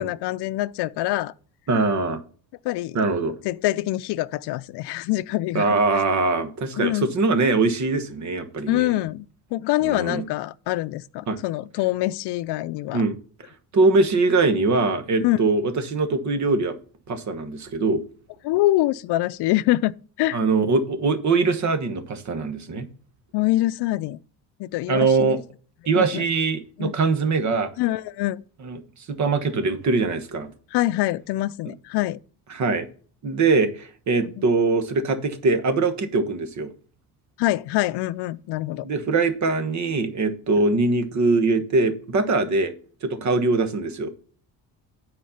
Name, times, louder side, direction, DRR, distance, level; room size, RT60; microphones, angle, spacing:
voice 1, 0.0-1.3 2.6-3.0 3.4-5.8 6.8-7.1 8.7-13.0 15.2-15.4 18.4-20.4 23.3-24.2 24.6-25.4 25.9-26.2 26.8-26.9 27.8-28.4 30.7-32.2 34.2-34.3 37.4-38.9, left 16 dB, 75° left, 0.5 m, -25 dB
voice 2, 1.7-2.2 2.9-3.4 5.5-8.9 9.9-10.2 11.3-11.4 12.9-13.2 13.7-16.7 17.1-18.0 20.3-22.8 24.9-25.4 25.9-27.7 28.6-28.8 29.1-30.5 32.5-32.9 33.2-36.7 38.8-42.7 43.0-44.1, right 3 dB, 45° right, 1.2 m, -22 dB
9.3 x 4.4 x 5.6 m
cardioid pair, 145°, 40 cm